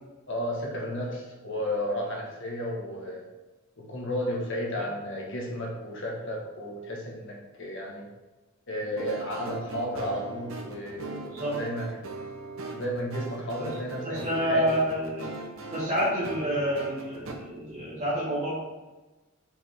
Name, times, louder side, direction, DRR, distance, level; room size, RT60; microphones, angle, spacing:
voice 1, 0.3-3.2 3.8-8.0 8.7-12.0 12.7-14.7, equal, 60° left, -2 dB, 1.6 m, -33 dB
sound 1, 9.0-17.3, right 3 dB, 65° right, 0.9 m, -40 dB
voice 2, 11.2-11.5 14.0-15.3 15.7-18.6, equal, 35° right, -11 dB, 1.8 m, -28 dB
5.7 x 5.3 x 3.6 m, 1.1 s
head